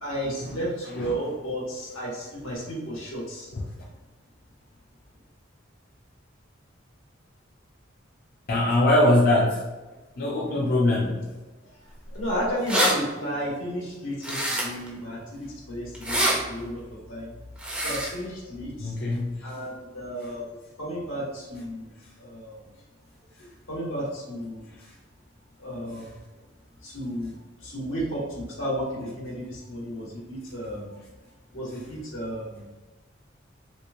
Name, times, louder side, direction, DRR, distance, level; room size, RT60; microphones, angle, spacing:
voice 1, 0.0-3.5 12.1-17.3 17.7-18.9 19.4-20.4 20.8-22.6 23.4-24.7 25.6-26.2 26.8-27.3 27.6-31.0 31.5-32.7, equal, 85° left, -5 dB, 1.3 m, -33 dB
voice 2, 8.5-9.6 10.2-11.3 16.1-16.2 18.8-19.5, left 1 dB, 50° left, -4 dB, 0.5 m, -22 dB
sound 1, 12.2-12.3 12.5-12.9 14.2-14.9 15.9-16.4 17.6-18.1, right 1 dB, 5° right, 0.5 m, -25 dB
3.3 x 3.0 x 2.6 m, 1.2 s
head